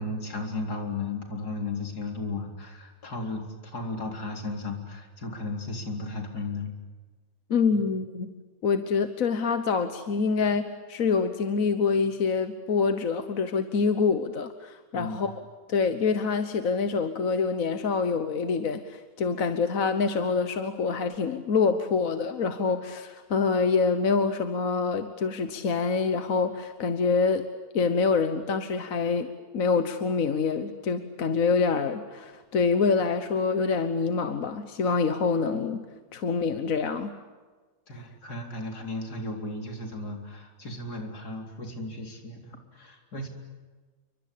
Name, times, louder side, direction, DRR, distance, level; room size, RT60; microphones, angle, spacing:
voice 1, 0.0-6.7 14.9-15.2 37.9-43.3, left 2 dB, 70° left, 3 dB, 4.5 m, -35 dB
voice 2, 7.5-8.3 8.6-15.3 15.7-27.5 27.7-35.9 36.1-37.1, left 5 dB, 55° left, 9 dB, 1.6 m, -26 dB
29.0 x 24.0 x 8.5 m, 1.3 s
omnidirectional pair, 1.7 m